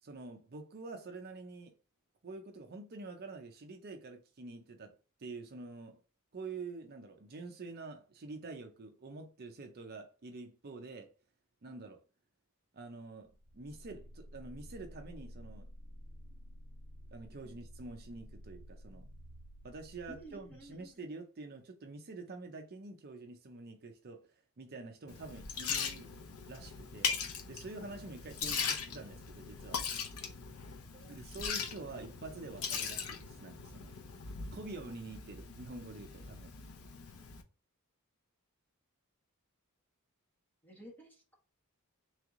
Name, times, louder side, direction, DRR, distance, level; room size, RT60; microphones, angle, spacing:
voice 1, 0.0-1.7 2.2-6.0 6.3-11.1 11.6-12.0 12.7-13.3 13.5-15.7 17.1-19.1 19.6-24.3 24.6-26.1 26.5-27.2 27.5-29.8 31.1-33.9 34.5-36.5, right 3 dB, 45° right, 0.6 m, -47 dB
sound 1, 13.3-20.9, equal, 65° right, 1.4 m, -52 dB
voice 2, 20.1-20.9 30.9-31.2 40.6-41.3, right 1 dB, 10° left, 1.3 m, -53 dB
Liquid, 25.1-37.4, left 6 dB, 75° left, 0.7 m, -40 dB
3.5 x 3.2 x 3.7 m
head